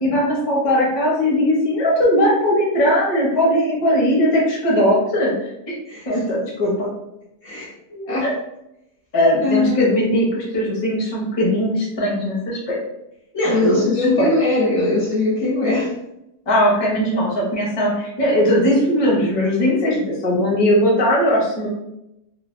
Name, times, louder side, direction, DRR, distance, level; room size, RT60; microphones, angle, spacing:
voice 1, 0.0-5.3 5.7-5.8 6.1-6.9 8.2-8.3 9.1-12.8 13.6-13.9 14.2-14.3 16.5-21.7, equal, 25° left, -5 dB, 0.6 m, -19 dB
voice 2, 7.4-8.3 9.4-9.8 13.3-15.9, left 2 dB, 55° left, -5 dB, 0.9 m, -20 dB
3.2 x 2.3 x 2.5 m, 0.86 s
omnidirectional pair, 1.6 m